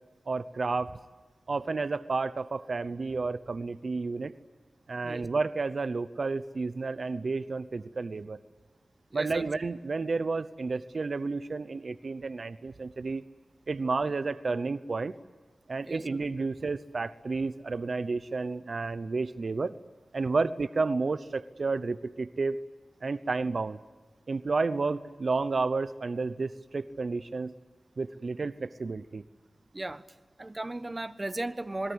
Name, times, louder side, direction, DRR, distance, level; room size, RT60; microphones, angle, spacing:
voice 1, 0.3-1.0 1.5-4.3 4.9-8.4 9.1-13.2 13.7-15.1 15.7-19.8 20.1-22.6 23.0-23.8 24.3-27.5 28.0-29.2, right 3 dB, 65° right, 14 dB, 0.8 m, -31 dB
voice 2, 9.1-9.4 15.9-16.1 29.7-30.0 30.4-31.9, right 2 dB, 30° right, 13 dB, 1.2 m, -35 dB
28.0 x 21.5 x 8.0 m, 1.3 s
cardioid pair, 55°, 0 cm